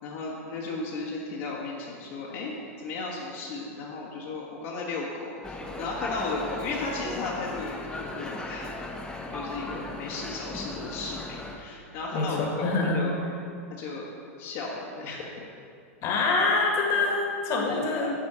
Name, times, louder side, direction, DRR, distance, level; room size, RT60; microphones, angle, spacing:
voice 1, 0.0-2.5 2.8-8.7 9.3-13.2 13.8-14.1 14.4-15.5 17.7-18.1, left 3 dB, 55° left, -4 dB, 1.3 m, -35 dB
sound 1, 5.4-11.6, left 2 dB, 10° left, 0.9 m, -37 dB
voice 2, 12.1-13.1 16.0-18.1, left 3 dB, 40° left, 0 dB, 1.5 m, -25 dB
9.0 x 4.3 x 5.6 m, 2.4 s
hypercardioid pair, 110°, 8 cm